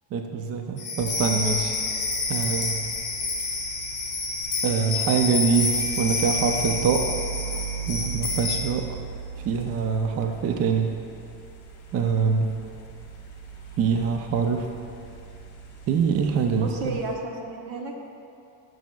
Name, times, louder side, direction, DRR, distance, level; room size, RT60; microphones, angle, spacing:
voice 1, 0.1-1.7 2.3-2.8 4.6-7.1 7.9-8.9 9.5-10.9 11.9-12.5 13.8-14.7 15.9-17.0, right 6 dB, 35° right, 4 dB, 0.4 m, -24 dB
sound 1, 0.8-8.6, left 3 dB, 25° left, 1.7 m, -28 dB
sound 2, 1.0-17.1, right 6 dB, 40° left, 1.1 m, -39 dB
voice 2, 16.6-18.0, right 2 dB, 70° right, 2 dB, 1.1 m, -32 dB
11.5 x 6.2 x 2.3 m, 2.5 s
cardioid pair, 135°, 44 cm